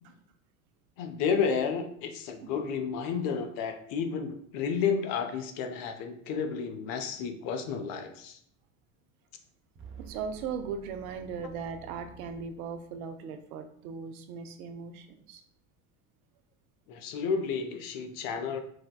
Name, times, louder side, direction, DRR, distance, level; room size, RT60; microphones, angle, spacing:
voice 1, 1.0-8.4 16.9-18.6, left 6 dB, 55° left, 6 dB, 0.6 m, -31 dB
sound 1, 9.7-13.2, right 5 dB, 30° right, 0.6 m, -50 dB
voice 2, 10.0-15.4, right 6 dB, 80° right, 7 dB, 0.5 m, -38 dB
4.4 x 2.2 x 2.2 m, 0.63 s
hypercardioid pair, 85°, 42 cm